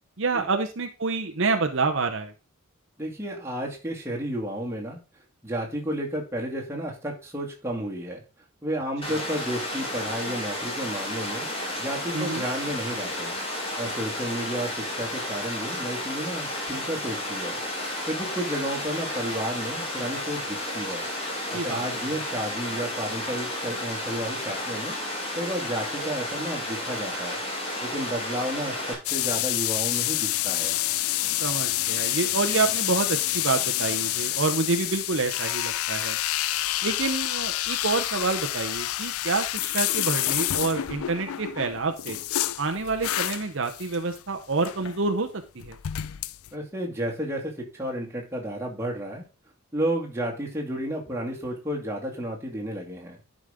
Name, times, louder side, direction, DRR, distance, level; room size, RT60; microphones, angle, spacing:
voice 1, 0.2-2.3 9.1-9.2 12.1-12.4 21.5-21.8 31.4-36.2 36.8-42.2 42.6-45.3 45.5-45.8, right 4 dB, 55° right, 6 dB, 0.8 m, -27 dB
voice 2, 3.0-5.0 5.4-8.2 8.6-11.5 11.8-13.3 13.8-17.6 18.1-21.0 21.5-25.0 25.4-27.4 27.8-30.8 46.5-49.3 49.7-53.2, right 1 dB, 10° right, -2 dB, 2.2 m, -32 dB
Water, 9.0-28.9, left 1 dB, 25° left, 2.7 m, -32 dB
sound 1, 29.1-44.2 44.5-45.0 45.6-46.5, left 14 dB, 75° left, 0.4 m, -28 dB
11.0 x 5.2 x 3.6 m, 0.33 s
head